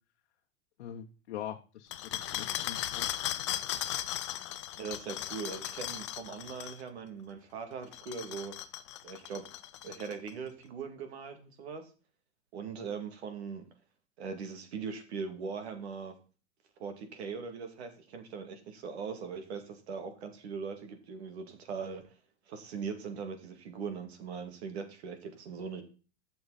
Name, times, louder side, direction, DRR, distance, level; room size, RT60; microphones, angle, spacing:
voice 1, 0.8-3.1, left 10 dB, 65° left, 2 dB, 1.1 m, -43 dB
sound 1, 1.9-6.8 7.8-10.3, left 13 dB, 30° left, 0.4 m, -37 dB
voice 2, 4.8-8.5 9.0-9.4 9.8-11.9 12.5-13.6 14.2-16.1 16.8-22.0 22.5-25.8, right 5 dB, 70° right, 7 dB, 2.5 m, -40 dB
11.5 x 6.8 x 4.2 m, 0.35 s
supercardioid pair, 180°, 34 cm